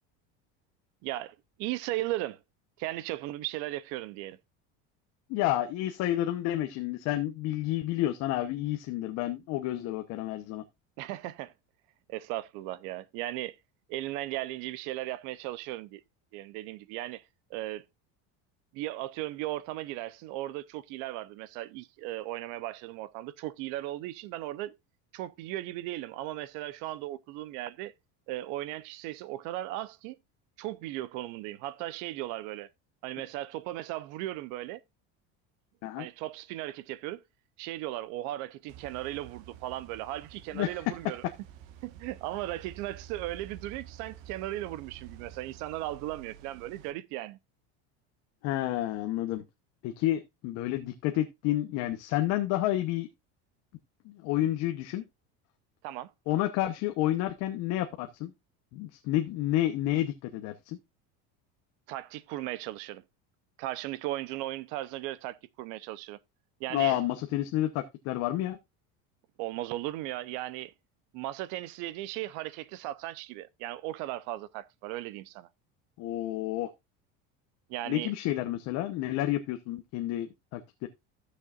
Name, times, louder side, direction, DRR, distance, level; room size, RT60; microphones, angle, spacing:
voice 1, 1.0-2.4 2.8-4.4 11.0-11.5 12.1-13.6 13.9-16.0 16.3-17.2 17.5-17.8 18.7-24.8 25.1-27.9 28.3-30.2 30.6-32.7 33.0-34.8 36.0-37.2 37.6-41.2 41.8-47.4 55.8-56.1 61.9-63.0 63.6-66.2 66.6-67.0 69.4-70.7 71.1-75.5 77.7-78.1, right 15 dB, 60° right, 0.8 m, -37 dB
voice 2, 5.3-10.6 35.8-36.1 40.5-40.8 48.4-49.4 49.8-53.1 54.0-55.0 56.3-58.3 58.7-60.8 66.7-68.6 76.0-76.7 77.9-80.9, left 14 dB, 50° left, 1.0 m, -30 dB
sound 1, 38.7-46.9, right 10 dB, 80° right, 1.5 m, -50 dB
15.0 x 6.5 x 2.5 m
cardioid pair, 175°, 34 cm